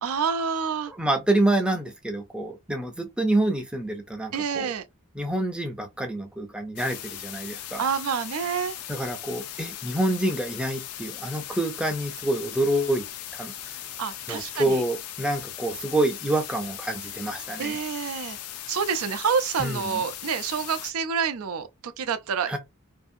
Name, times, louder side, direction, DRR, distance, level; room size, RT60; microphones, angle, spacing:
voice 1, 0.0-0.9 4.3-4.8 7.8-8.8 14.0-14.8 17.6-18.4 18.7-22.5, right 6 dB, 75° right, 0.4 m, -28 dB
voice 2, 0.9-4.7 5.2-7.8 8.9-13.0 13.3-13.5 14.3-17.8 19.6-20.0 22.5-22.6, right 1 dB, 5° right, 0.4 m, -27 dB
sound 1, 6.8-20.9, left 11 dB, 90° left, 0.4 m, -38 dB
2.6 x 2.4 x 2.5 m
head